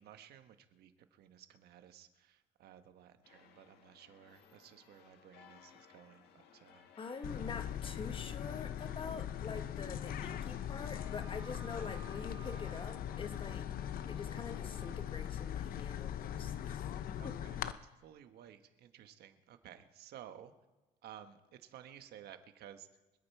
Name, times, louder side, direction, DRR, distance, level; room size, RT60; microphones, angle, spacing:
voice 1, 0.0-6.9 11.8-11.9 17.2-20.5 21.0-22.9, right 10 dB, 70° right, 9 dB, 1.3 m, -55 dB
sound 1, 3.2-15.0, left 7 dB, 75° left, 1.6 m, -61 dB
voice 2, 7.0-13.7 14.1-16.8 17.2-17.4, left 5 dB, 30° left, 8 dB, 1.4 m, -46 dB
sound 2, 7.2-17.7, left 10 dB, 60° left, 0.7 m, -40 dB
Wind instrument woodwind instrument, 9.9-15.1, right 7 dB, 30° right, 1.5 m, -60 dB
25.5 x 8.7 x 4.8 m, 1.1 s
cardioid pair, 110°, 17 cm